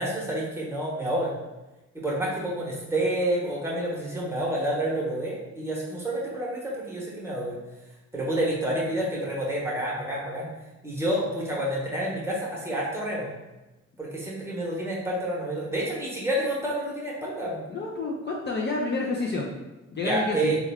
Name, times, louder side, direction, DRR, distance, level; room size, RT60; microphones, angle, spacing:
voice 1, 0.0-1.3 1.9-7.6 8.1-10.5 10.8-13.3 14.0-17.6 20.0-20.6, right 1 dB, 10° right, -5 dB, 1.0 m, -29 dB
voice 2, 17.7-19.5 19.9-20.5, left 3 dB, 35° left, -2 dB, 0.5 m, -29 dB
3.3 x 2.3 x 3.4 m, 1.0 s
cardioid pair, 90°, 30 cm